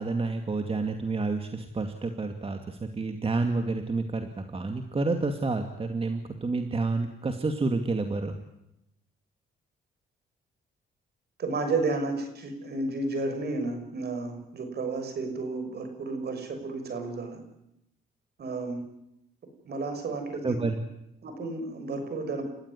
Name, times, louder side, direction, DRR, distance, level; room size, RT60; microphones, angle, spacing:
voice 1, 0.0-8.3 20.4-20.8, right 3 dB, 30° right, 6 dB, 2.4 m, -29 dB
voice 2, 11.4-17.4 18.4-18.8 19.6-20.6 21.2-22.4, right 3 dB, 55° right, 7 dB, 6.5 m, -32 dB
30.0 x 14.5 x 9.9 m, 0.86 s
cardioid pair, 90°, 20 cm